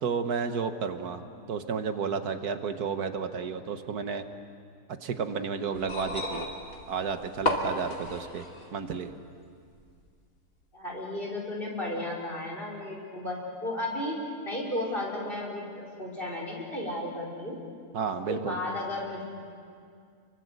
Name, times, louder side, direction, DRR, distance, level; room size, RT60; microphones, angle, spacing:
voice 1, 0.0-4.2 5.0-6.5 6.9-8.5 8.7-9.1 17.9-18.6, right 5 dB, 75° right, 8 dB, 1.7 m, -32 dB
sound 1, 5.7-8.7 9.8-9.9, left 1 dB, 60° left, 3.2 m, -33 dB
voice 2, 10.7-14.2 14.4-17.6 18.3-19.2, left 1 dB, 35° left, -1 dB, 5.3 m, -34 dB
29.5 x 23.0 x 8.1 m, 2.3 s
omnidirectional pair, 1.6 m